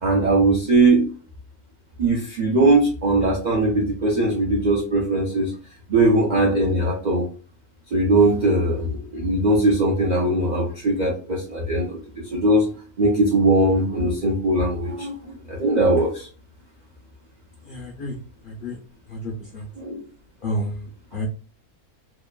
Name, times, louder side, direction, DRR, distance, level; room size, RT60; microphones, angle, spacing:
voice 1, 0.0-1.1 2.0-5.5 5.9-7.3 7.9-12.7 13.0-16.3 19.8-20.0, right 2 dB, 85° right, -3 dB, 0.4 m, -20 dB
voice 2, 17.6-18.1 18.4-18.8 19.1-19.6 20.4-21.3, left 1 dB, 70° left, -2 dB, 0.5 m, -30 dB
2.8 x 2.2 x 2.2 m, 0.37 s
omnidirectional pair, 1.5 m